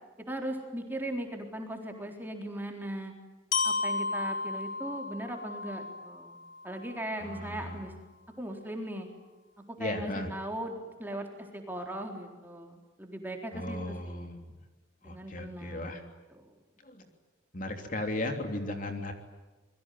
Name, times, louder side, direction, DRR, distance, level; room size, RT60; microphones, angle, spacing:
voice 1, 0.3-3.1 3.6-6.4 6.6-7.9 8.4-9.1 9.7-11.3 11.5-14.3 15.0-16.6, right 1 dB, 10° right, 3 dB, 4.1 m, -38 dB
Glockenspiel, 3.5-7.5, left 4 dB, 70° left, 4.2 m, -34 dB
voice 2, 7.2-7.8 9.8-10.3 13.5-14.5 15.0-16.0 16.8-17.1 17.5-19.1, left 1 dB, 45° left, 5 dB, 3.2 m, -36 dB
27.5 x 22.5 x 9.5 m, 1.2 s
head